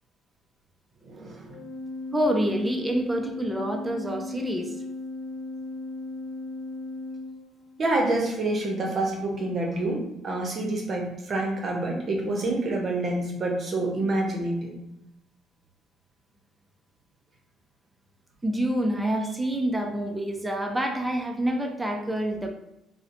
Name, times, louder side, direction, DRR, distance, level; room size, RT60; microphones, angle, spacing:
voice 1, 1.0-1.5 7.8-14.8, right 2 dB, 45° right, 0 dB, 0.7 m, -27 dB
Organ, 1.5-8.0, left 2 dB, 85° left, 0.5 m, -37 dB
voice 2, 2.1-4.7 18.4-22.5, right 1 dB, 10° right, 3 dB, 0.4 m, -27 dB
2.7 x 2.1 x 2.5 m, 0.83 s
cardioid pair, 100°, 0 cm